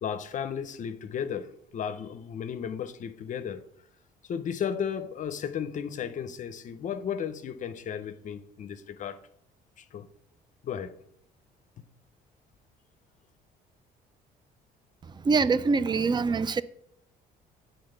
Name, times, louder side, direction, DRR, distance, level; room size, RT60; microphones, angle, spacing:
voice 1, 0.0-3.6 4.2-9.2 9.8-10.1 10.6-10.9, left 8 dB, 50° left, 0.6 m, -34 dB
voice 2, 15.2-16.6, right 4 dB, 25° right, 0.4 m, -24 dB
7.8 x 4.0 x 6.6 m
cardioid pair, 110°, 17 cm